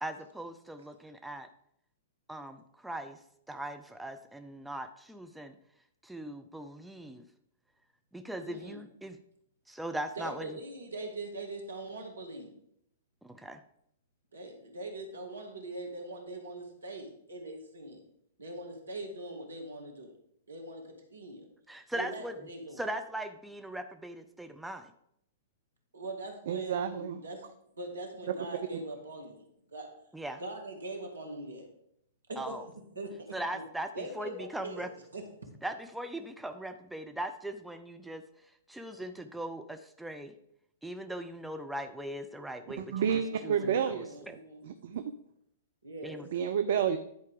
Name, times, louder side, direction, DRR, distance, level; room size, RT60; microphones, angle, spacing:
voice 1, 0.0-1.5 2.3-3.2 3.5-5.6 6.0-7.2 8.1-9.2 9.7-10.6 13.2-13.6 21.7-22.4 22.8-24.9 30.1-30.4 32.4-32.6 33.3-33.9 34.2-34.9 35.6-38.2 38.7-40.4 40.8-42.9 43.4-43.5 43.9-44.4 46.0-46.3, right 1 dB, 5° right, 7 dB, 0.5 m, -39 dB
voice 2, 8.4-8.8 10.2-12.5 14.3-18.0 18.4-20.1 20.5-21.5 21.9-22.9 25.9-27.4 27.8-29.9 30.4-31.7 32.3-32.6 33.0-33.6 33.9-34.9 35.1-35.3 43.2-44.7 45.8-46.2, right 2 dB, 75° right, 3 dB, 1.9 m, -42 dB
voice 3, 26.5-27.2 28.3-28.4 28.7-28.8 42.7-44.2 44.6-45.0 46.3-47.0, right 8 dB, 50° right, 10 dB, 0.5 m, -30 dB
10.5 x 4.6 x 5.0 m, 0.74 s
figure-of-eight pair, 105°, 0 cm